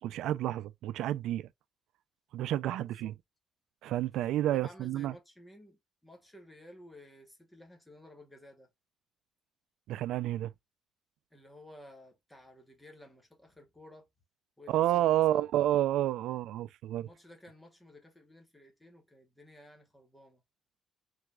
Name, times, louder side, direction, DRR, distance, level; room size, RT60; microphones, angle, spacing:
voice 1, 0.0-1.5 2.3-3.1 3.8-5.1 9.9-10.5 14.7-17.1, right 13 dB, 85° right, 0.4 m, -30 dB
voice 2, 2.6-3.1 4.5-8.7 11.3-14.1 14.6-15.4 17.0-20.4, left 1 dB, 5° left, 1.1 m, -54 dB
4.7 x 3.5 x 2.3 m
cardioid pair, 165°, 0 cm